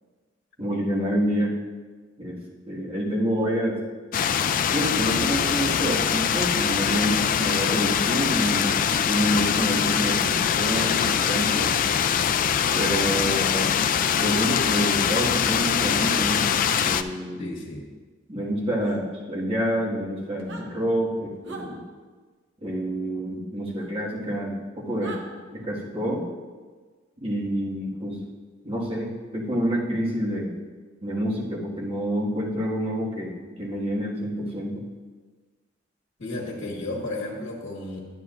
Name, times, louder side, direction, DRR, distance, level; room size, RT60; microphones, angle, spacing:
voice 1, 0.6-1.6 2.2-3.8 4.7-11.7 12.7-13.7 14.2-17.4 18.3-21.8 22.6-25.2 25.5-26.3 27.2-28.3 28.6-30.5 31.0-34.8, equal, 30° right, -5 dB, 1.9 m, -28 dB
sound 1, 4.1-17.0, left 8 dB, 45° left, 0.3 m, -23 dB
sound 2, 14.3-14.5 16.6-16.8 18.8-19.0 20.3-20.7 21.4-21.7 23.7-23.9 25.0-25.2, right 3 dB, 65° right, 1.1 m, -39 dB
voice 2, 17.4-17.9 36.2-38.0, left 2 dB, 65° left, -3 dB, 1.7 m, -33 dB
11.0 x 9.5 x 2.6 m, 1.4 s
head